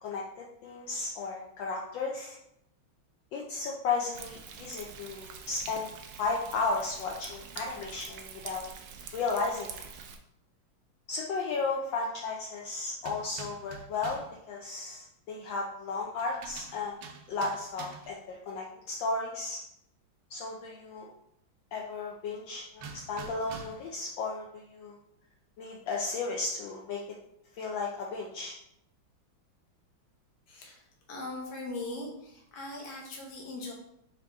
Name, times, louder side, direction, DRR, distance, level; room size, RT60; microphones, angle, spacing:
voice 1, 0.0-2.4 3.3-5.9 6.2-8.6 9.1-9.8 11.1-17.0 17.3-19.6 20.3-21.1 21.7-25.0 25.6-27.0 27.6-28.5, left 4 dB, 75° left, -1 dB, 1.3 m, -34 dB
Thunder, 4.1-10.2, right 6 dB, 90° right, 0.8 m, -46 dB
sound 1, 13.0-14.4 16.2-18.2 22.8-24.0, right 5 dB, 70° right, 1.1 m, -46 dB
voice 2, 30.5-33.7, left 2 dB, 55° left, -1 dB, 1.4 m, -40 dB
5.2 x 2.7 x 3.4 m, 0.77 s
omnidirectional pair, 2.2 m